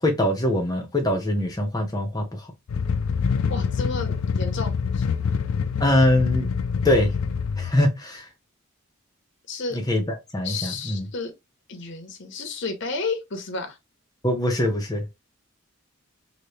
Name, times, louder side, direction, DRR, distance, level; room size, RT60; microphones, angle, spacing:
voice 1, 0.0-2.5 5.8-6.5 6.8-7.1 7.6-8.3 9.7-11.1 14.2-15.0, left 1 dB, 20° left, 0.9 m, -23 dB
sound 1, 2.7-7.7, left 6 dB, 90° left, 0.4 m, -26 dB
voice 2, 3.5-5.0 9.5-9.8 10.4-11.3 11.7-13.8, left 3 dB, 60° left, 0.8 m, -32 dB
2.8 x 2.7 x 3.2 m
head